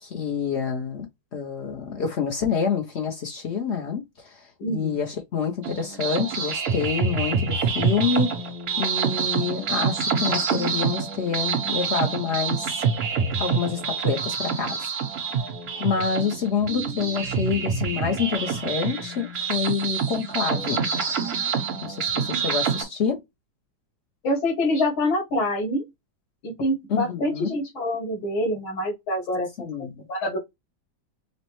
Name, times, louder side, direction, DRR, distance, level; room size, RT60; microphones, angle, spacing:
voice 1, 0.0-8.4 8.8-12.8 13.4-14.9 15.8-20.8 21.8-23.2 26.9-27.5 29.6-30.0, left 6 dB, 70° left, 0.6 m, -27 dB
voice 2, 4.6-4.9 22.3-22.4 24.2-25.9 26.4-29.5 30.1-30.5, left 1 dB, 85° left, 2.6 m, -26 dB
sound 1, 5.6-22.8, right 6 dB, 50° right, 1.6 m, -27 dB
5.6 x 2.2 x 3.0 m
omnidirectional pair, 2.2 m